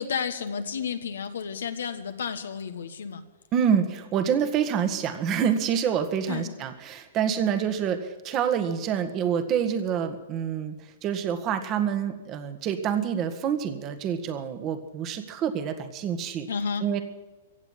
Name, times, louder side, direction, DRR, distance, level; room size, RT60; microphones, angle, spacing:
voice 1, 0.0-3.2 6.3-6.5 16.5-16.8, left 6 dB, 85° left, 8 dB, 1.4 m, -31 dB
voice 2, 3.5-10.8 11.0-16.5 16.8-17.0, right 8 dB, 35° right, 8 dB, 1.6 m, -27 dB
16.0 x 8.2 x 9.6 m, 1.2 s
hypercardioid pair, 130°, 0 cm